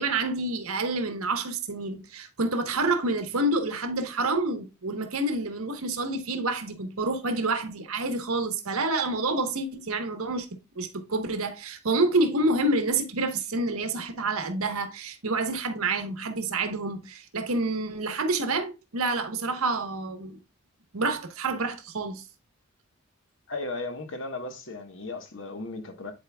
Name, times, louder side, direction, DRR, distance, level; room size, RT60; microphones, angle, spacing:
voice 1, 0.0-10.5 10.7-20.4 20.9-22.2, right 2 dB, 85° right, 1.2 m, -28 dB
voice 2, 23.5-26.1, left 2 dB, 60° left, 1.2 m, -36 dB
10.5 x 4.5 x 2.3 m
head